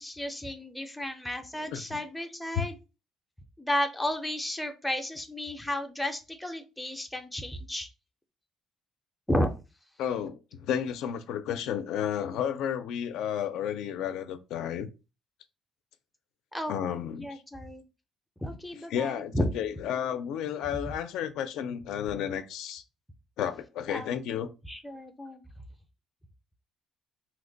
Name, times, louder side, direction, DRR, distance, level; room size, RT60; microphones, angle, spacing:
voice 1, 0.0-2.8 3.6-7.9 9.3-9.5 16.5-16.8 17.2-17.8 18.4-19.5 23.9-25.4, left 1 dB, 5° left, 0.4 m, -33 dB
voice 2, 10.0-14.9 16.7-17.4 18.9-22.8 23.4-24.5, left 9 dB, 80° left, 0.3 m, -32 dB
2.9 x 2.1 x 3.8 m
cardioid pair, 160°, 0 cm